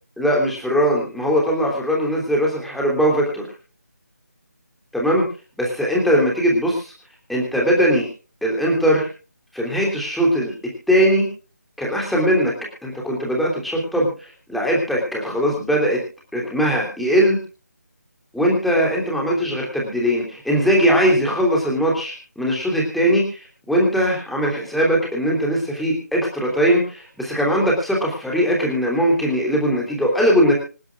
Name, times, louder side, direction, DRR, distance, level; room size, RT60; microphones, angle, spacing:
voice 1, 0.2-3.5 4.9-5.2 5.6-6.9 7.3-8.1 8.4-9.1 9.5-10.5 10.9-11.3 11.8-12.5 12.8-16.0 16.3-17.4 18.3-30.5, equal, ahead, -3 dB, 3.2 m, -20 dB
26.5 x 10.5 x 2.4 m, 0.35 s
figure-of-eight pair, 160°, 9 cm